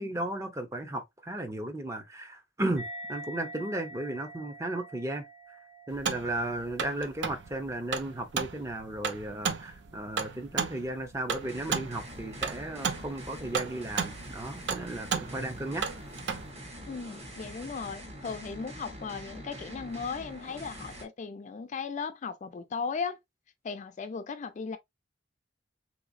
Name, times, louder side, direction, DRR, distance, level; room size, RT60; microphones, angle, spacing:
voice 1, 0.0-2.8 3.1-5.2 5.9-15.8, right 1 dB, 15° right, 0.6 m, -35 dB
sound 1, 2.8-9.7, equal, 85° right, 1.4 m, -47 dB
sound 2, 5.9-16.5, right 6 dB, 70° right, 0.5 m, -35 dB
sound 3, 11.4-21.0, equal, 35° right, 1.1 m, -44 dB
voice 2, 16.9-23.2 23.6-24.8, left 5 dB, 40° left, 0.4 m, -37 dB
3.4 x 2.8 x 2.5 m
head